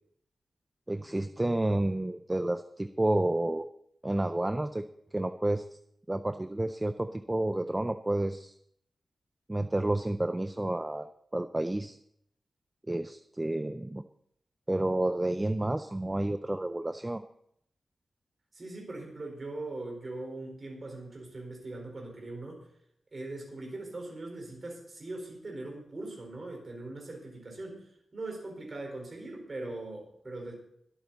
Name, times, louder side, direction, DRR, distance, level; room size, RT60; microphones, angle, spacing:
voice 1, 0.9-3.7 4.0-4.8 5.1-5.6 6.1-8.5 9.5-11.1 11.3-12.0 12.9-14.0 14.7-17.2, right 1 dB, 15° right, 9 dB, 0.4 m, -30 dB
voice 2, 18.5-22.6 23.1-27.9 28.1-30.6, right 2 dB, 30° right, 1 dB, 4.5 m, -41 dB
22.0 x 8.9 x 4.1 m, 0.72 s
wide cardioid pair, 165°, 0 cm